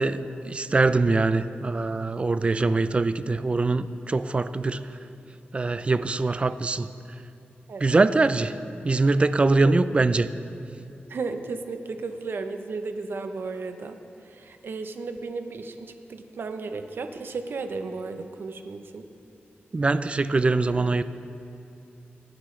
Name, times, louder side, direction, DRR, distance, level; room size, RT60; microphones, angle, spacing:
voice 1, 0.0-4.9 5.5-6.9 7.8-8.6 8.8-10.3 19.7-21.0, right 3 dB, 30° right, 13 dB, 0.4 m, -23 dB
voice 2, 11.1-14.0 14.3-15.7 16.1-19.1, right 4 dB, 65° right, 7 dB, 0.7 m, -34 dB
18.0 x 10.0 x 3.2 m, 2.6 s
wide cardioid pair, 115°, 4 cm